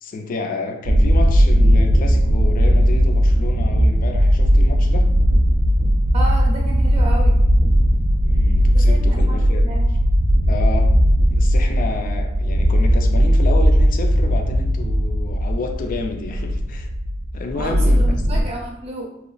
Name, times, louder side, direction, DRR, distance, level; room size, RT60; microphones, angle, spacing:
voice 1, 0.0-5.1 8.2-9.8 10.5-10.9 11.3-16.9 17.3-18.0, left 3 dB, 45° left, 4 dB, 0.3 m, -30 dB
sound 1, 0.8-18.4, equal, 80° right, 0.4 m, -17 dB
voice 2, 6.1-7.4 8.7-9.9 17.5-19.2, right 1 dB, 35° right, -2 dB, 0.6 m, -31 dB
2.9 x 2.3 x 2.4 m, 0.82 s
head